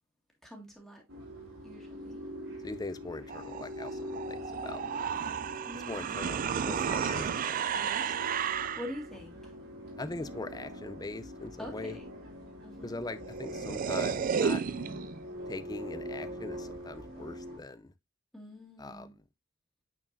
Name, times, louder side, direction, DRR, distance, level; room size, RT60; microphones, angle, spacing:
voice 1, 0.4-1.0 1.6-2.2 5.6-6.3 8.8-9.4 11.6-12.1 12.6-13.0 18.3-19.2, left 1 dB, ahead, 2.0 m, -44 dB
motor glider near pond, 1.1-17.6, left 1 dB, 75° right, 3.6 m, -43 dB
voice 2, 2.6-4.8 5.7-8.1 10.0-12.0 12.8-14.6 15.5-17.9 18.8-19.1, left 2 dB, 20° left, 0.5 m, -41 dB
sound 1, 3.3-9.0 12.9-13.0 13.2-15.2, right 7 dB, 40° right, 0.3 m, -33 dB
8.9 x 4.4 x 2.6 m
head